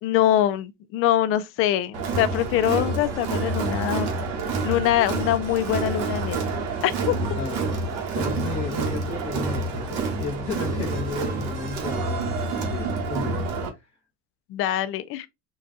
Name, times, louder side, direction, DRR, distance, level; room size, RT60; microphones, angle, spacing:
voice 1, 0.0-4.1 4.6-6.4 6.8-7.2 14.5-15.3, left 12 dB, 50° left, 0.4 m, -23 dB
Crowd, 1.9-13.7, right 3 dB, 75° right, 1.1 m, -28 dB
voice 2, 7.3-7.9 8.1-13.4 13.7-13.8, left 4 dB, 20° left, 1.0 m, -34 dB
4.0 x 2.3 x 3.7 m
cardioid pair, 170°, 29 cm